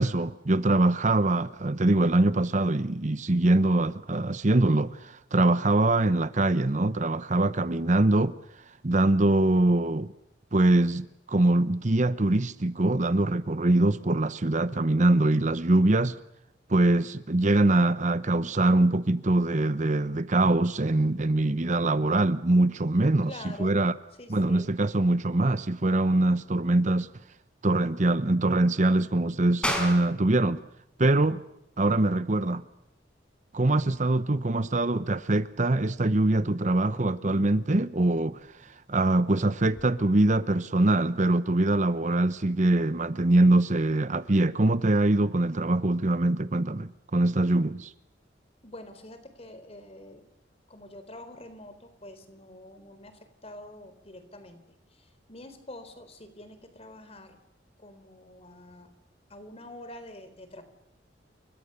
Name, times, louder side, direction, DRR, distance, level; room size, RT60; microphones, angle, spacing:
voice 1, 0.0-8.3 8.8-10.1 10.5-16.2 16.7-23.3 23.6-23.9 24.3-27.1 27.6-30.6 31.0-31.4 31.8-32.6 33.5-38.4 38.9-47.9, right 2 dB, 40° right, 0.9 m, -23 dB
voice 2, 23.3-23.8 24.2-24.7 48.6-50.2 50.7-54.6 54.9-57.4 57.8-58.9 59.3-60.6, left 1 dB, 35° left, 3.9 m, -46 dB
sound 1, 29.6-39.9, left 1 dB, 5° left, 4.9 m, -40 dB
29.5 x 24.0 x 6.8 m
head